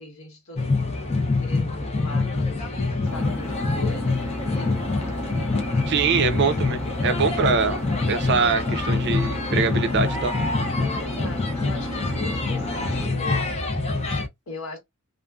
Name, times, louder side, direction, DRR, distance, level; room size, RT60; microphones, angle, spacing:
voice 1, 0.0-6.1 10.8-13.4 14.5-14.8, left 3 dB, 75° left, 1.3 m, -40 dB
sound 1, 0.6-14.3, left 3 dB, 30° left, 0.6 m, -25 dB
Engine, 3.1-13.1, left 1 dB, 10° left, 0.9 m, -34 dB
voice 2, 5.9-10.3, right 5 dB, 55° right, 0.5 m, -23 dB
2.5 x 2.4 x 2.3 m
head